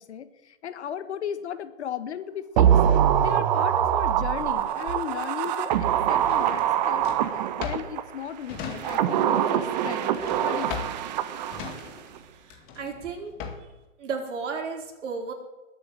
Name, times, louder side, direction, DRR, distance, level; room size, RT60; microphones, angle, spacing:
voice 1, 0.0-2.7 3.2-10.1 10.4-11.1, left 9 dB, 55° left, 12 dB, 1.6 m, -36 dB
sound 1, 2.6-8.0 8.7-11.9 12.2-12.3, right 10 dB, 30° right, 1.0 m, -24 dB
Drawer open or close, 6.2-9.3 9.6-13.8, left 6 dB, 25° left, 2.1 m, -39 dB
voice 2, 12.3-13.3 14.0-15.3, right 5 dB, 60° right, 2 dB, 4.3 m, -34 dB
20.5 x 8.7 x 7.6 m, 1.0 s
hypercardioid pair, 145°, 40 cm